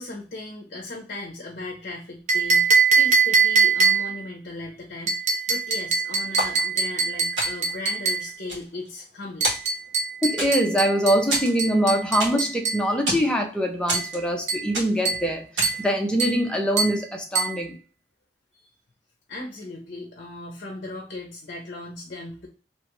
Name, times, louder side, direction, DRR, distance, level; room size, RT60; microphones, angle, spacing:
voice 1, 0.0-9.5 18.5-18.7 19.3-22.5, left 2 dB, 50° left, -1 dB, 0.6 m, -37 dB
sound 1, 2.3-4.2 5.1-8.3 9.4-12.9 13.9-14.1 14.5-14.7 15.0-15.3 15.6-15.9 16.2-16.4 16.8-17.0 17.3-17.6, right 5 dB, 40° right, 0.6 m, -23 dB
sound 2, 6.4-7.0 7.4-7.8 8.3-9.2 9.4-10.0 10.4-10.8 11.3-12.6 12.9-13.3 13.9-14.4 14.7-15.1 15.6-15.9, right 1 dB, 80° right, 1.4 m, -29 dB
voice 2, 10.2-17.8, equal, 5° left, 1 dB, 0.5 m, -23 dB
3.0 x 2.4 x 2.9 m, 0.37 s
head